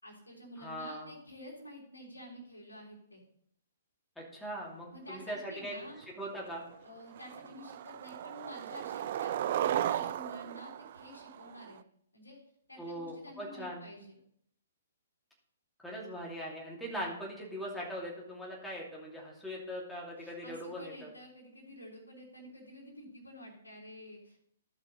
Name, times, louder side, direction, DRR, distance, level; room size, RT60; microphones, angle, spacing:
voice 1, 0.0-3.2 4.9-6.0 6.8-11.8 12.1-12.4 12.7-14.2 20.2-24.4, left 1 dB, 85° left, -2 dB, 3.5 m, -49 dB
voice 2, 0.6-1.1 4.2-5.7 6.2-6.6 12.8-13.8 15.8-21.1, equal, 5° left, -4 dB, 2.8 m, -41 dB
Skateboard, 6.0-6.1 6.5-6.8 7.2-11.8, right 11 dB, 50° right, 0.4 m, -35 dB
15.0 x 5.7 x 4.0 m, 0.71 s
figure-of-eight pair, 125°, 0 cm